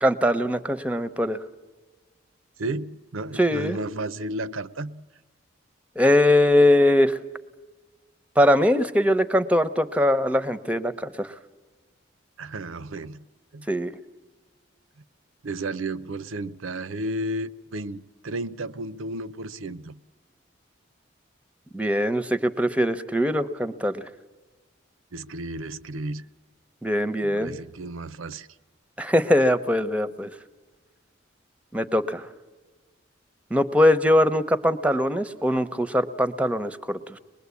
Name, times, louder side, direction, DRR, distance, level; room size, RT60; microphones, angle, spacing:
voice 1, 0.0-1.4 3.4-3.8 6.0-7.2 8.4-11.3 13.7-13.9 21.7-24.1 26.8-27.5 29.0-30.3 31.7-32.3 33.5-37.2, left 1 dB, 5° right, 0.7 m, -21 dB
voice 2, 2.6-5.0 12.4-13.3 13.5-13.7 15.4-20.0 25.1-26.3 27.2-28.5, right 2 dB, 85° right, 0.7 m, -33 dB
24.0 x 21.0 x 8.3 m
head